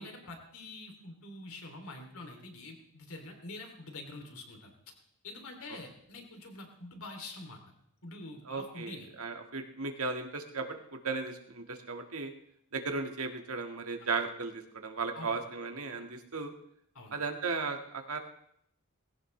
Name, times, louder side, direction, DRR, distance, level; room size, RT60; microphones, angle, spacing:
voice 1, 0.0-4.7 5.2-7.6 8.0-9.1 15.1-15.4 16.9-17.1, left 2 dB, 75° left, 3 dB, 3.0 m, -46 dB
voice 2, 8.5-12.3 12.7-16.5 17.1-18.2, right 4 dB, 75° right, 4 dB, 1.8 m, -36 dB
20.5 x 16.5 x 3.3 m, 0.71 s
head